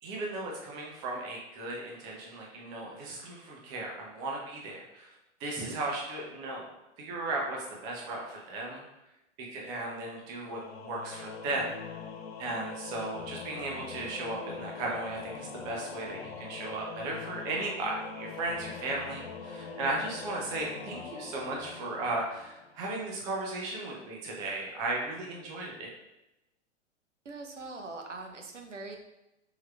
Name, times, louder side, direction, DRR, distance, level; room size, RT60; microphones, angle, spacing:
voice 1, 0.0-5.1 5.4-6.6 7.0-8.8 9.4-11.7 12.4-25.9, right 2 dB, 10° right, -2 dB, 0.3 m, -36 dB
Singing / Musical instrument, 10.4-22.9, left 5 dB, 60° left, 0.6 m, -43 dB
voice 2, 27.2-29.0, right 3 dB, 85° right, 3 dB, 0.7 m, -42 dB
4.5 x 3.6 x 2.2 m, 0.93 s
figure-of-eight pair, 105°, 36 cm